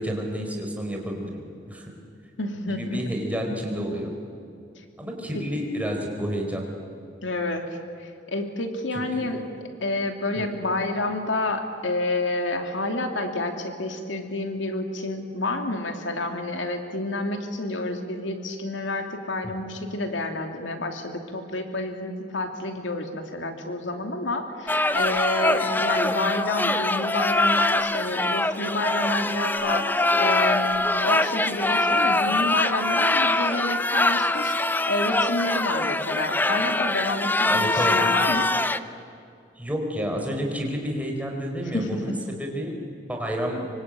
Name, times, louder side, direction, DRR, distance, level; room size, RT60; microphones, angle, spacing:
voice 1, 0.0-1.9 2.7-4.1 5.0-6.7 8.9-9.3 10.3-10.4 37.5-38.0 39.6-42.8 43.1-43.7, equal, 10° right, 1 dB, 4.6 m, -30 dB
voice 2, 2.4-3.0 5.3-5.4 7.2-7.6 8.0-9.4 9.8-29.8 30.1-38.5 41.7-41.9, left 2 dB, 85° left, 5 dB, 2.7 m, -29 dB
sound 1, 24.7-38.8, left 2 dB, 10° left, 0.7 m, -23 dB
25.5 x 24.5 x 9.0 m, 2.5 s
head